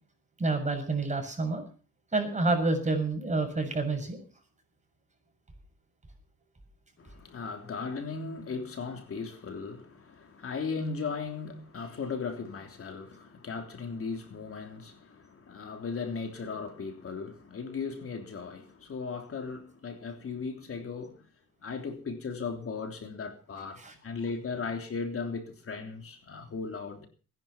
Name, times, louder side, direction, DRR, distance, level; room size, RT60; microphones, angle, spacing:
voice 1, 0.4-1.6 2.1-4.2 23.8-23.9, right 3 dB, 25° right, 7.2 m, -28 dB
voice 2, 7.0-21.3 21.6-27.1, left 5 dB, 45° left, 3.4 m, -37 dB
19.5 x 11.0 x 5.9 m
cardioid pair, 90°, 30 cm